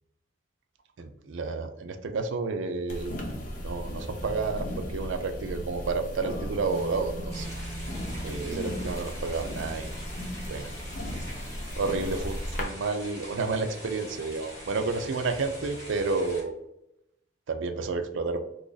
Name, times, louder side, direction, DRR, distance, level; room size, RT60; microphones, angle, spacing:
voice 1, 1.0-3.2 3.6-7.5 8.2-9.9 10.5-10.7 11.8-16.6 17.5-18.4, right 4 dB, 85° right, 8 dB, 0.4 m, -30 dB
sound 1, 2.9-12.6, equal, 45° left, 0.7 m, -36 dB
sound 2, 7.3-16.4, left 1 dB, 20° left, 1.4 m, -43 dB
3.0 x 2.5 x 3.9 m, 0.86 s
head